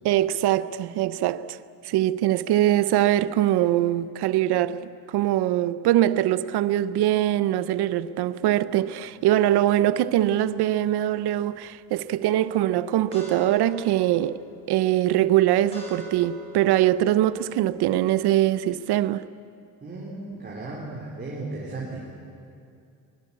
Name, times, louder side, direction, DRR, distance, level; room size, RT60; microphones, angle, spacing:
voice 1, 0.0-1.6 1.8-14.4 14.7-19.2, right 13 dB, 85° right, 0.8 m, -22 dB
sound 1, 9.0-18.3, equal, 15° left, 5.3 m, -45 dB
voice 2, 19.8-22.0, right 2 dB, 25° right, 3.5 m, -35 dB
23.5 x 21.5 x 8.4 m
cardioid pair, 170°, 38 cm